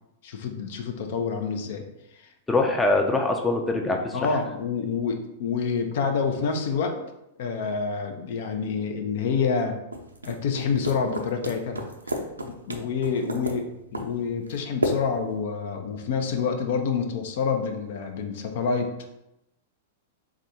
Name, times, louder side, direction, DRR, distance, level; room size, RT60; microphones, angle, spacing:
voice 1, 0.2-1.8 2.2-2.3 4.1-7.0 7.4-9.8 10.2-11.9 12.4-18.9, left 5 dB, 60° left, 4 dB, 0.6 m, -27 dB
voice 2, 2.5-4.2, left 2 dB, 10° left, 2 dB, 0.5 m, -23 dB
sound 1, 9.9-15.4, right 1 dB, 90° right, 0.5 m, -33 dB
3.6 x 2.4 x 4.2 m, 0.87 s
figure-of-eight pair, 100°, 0 cm